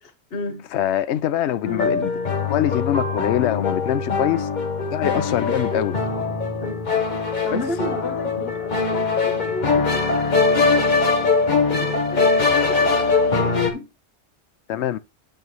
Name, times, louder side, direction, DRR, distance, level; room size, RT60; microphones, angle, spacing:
voice 1, 0.0-0.7 6.6-6.9 7.4-10.2 11.7-13.9, left 1 dB, 60° left, 1.5 m, -33 dB
voice 2, 0.7-2.1 2.4-4.5 4.9-6.0 7.5-7.6 14.7-15.0, left 11 dB, 80° left, 0.9 m, -23 dB
sound 1, 1.6-13.7, left 4 dB, 45° left, 1.3 m, -22 dB
9.0 x 3.1 x 5.3 m
omnidirectional pair, 1.1 m